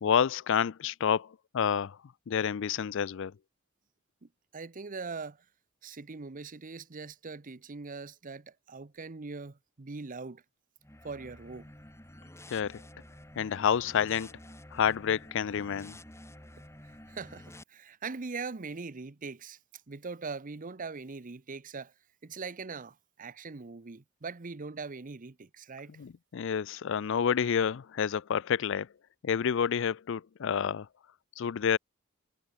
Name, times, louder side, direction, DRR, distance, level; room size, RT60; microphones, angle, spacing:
voice 1, 0.0-2.0 2.3-3.3 12.5-12.8 13.4-14.4 14.7-16.0 26.0-28.9 29.2-30.9 31.4-31.8, left 7 dB, 65° left, 0.4 m, -29 dB
voice 2, 4.2-5.4 5.8-10.4 11.0-11.7 16.8-19.6 19.9-21.9 22.2-25.9, right 4 dB, 40° right, 0.8 m, -41 dB
sound 1, 10.8-17.6, left 1 dB, 15° left, 6.8 m, -50 dB
head